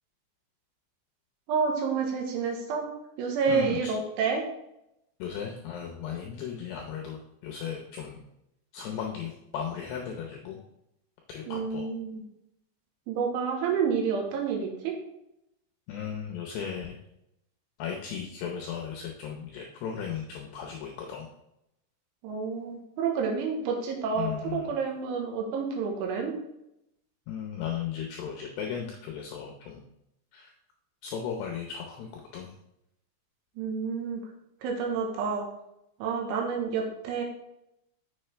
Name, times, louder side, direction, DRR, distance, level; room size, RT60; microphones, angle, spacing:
voice 1, 1.5-2.9 3.2-4.4 11.5-12.3 13.1-14.9 22.2-26.3 33.6-34.2 34.6-35.5 36.0-37.2, right 5 dB, 80° right, 1 dB, 3.4 m, -29 dB
voice 2, 3.5-3.9 5.2-8.2 8.7-10.6 11.3-11.9 15.9-17.0 17.8-21.3 24.2-24.7 27.3-29.8 30.3-30.5 31.0-32.5, left 8 dB, 80° left, 1 dB, 2.4 m, -36 dB
7.0 x 7.0 x 3.3 m, 0.83 s
omnidirectional pair, 5.7 m